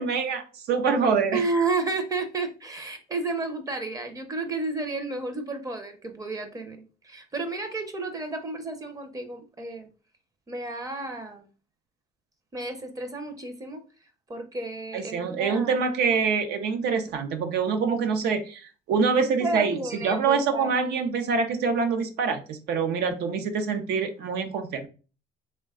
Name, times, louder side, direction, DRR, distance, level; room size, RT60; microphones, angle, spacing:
voice 1, 0.0-1.4 14.9-24.9, right 5 dB, 75° right, 6 dB, 0.6 m, -25 dB
voice 2, 1.3-9.9 10.5-11.5 12.5-13.8 14.3-15.7 19.4-20.7, right 3 dB, 20° right, 7 dB, 0.6 m, -31 dB
3.1 x 2.2 x 3.5 m, 0.35 s
cardioid pair, 110°, 17 cm